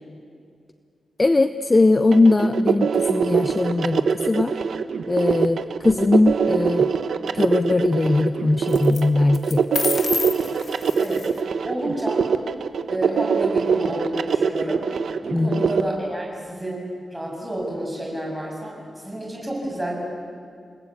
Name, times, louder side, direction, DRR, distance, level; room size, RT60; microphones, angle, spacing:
voice 1, 1.2-4.5 5.1-6.9 7.3-9.7 15.3-15.7, left 2 dB, 20° left, 11 dB, 0.6 m, -20 dB
sound 1, 2.1-15.8, right 6 dB, 65° right, 1.0 m, -23 dB
sound 2, 5.8-6.3 8.7-9.0 9.3-11.4, left 5 dB, 50° left, 1.8 m, -29 dB
voice 2, 11.6-12.3 12.9-14.8 15.2-16.8 17.1-19.9, right 1 dB, 5° right, -2 dB, 6.6 m, -30 dB
29.0 x 20.0 x 8.6 m, 2.3 s
wide cardioid pair, 160°, 0 cm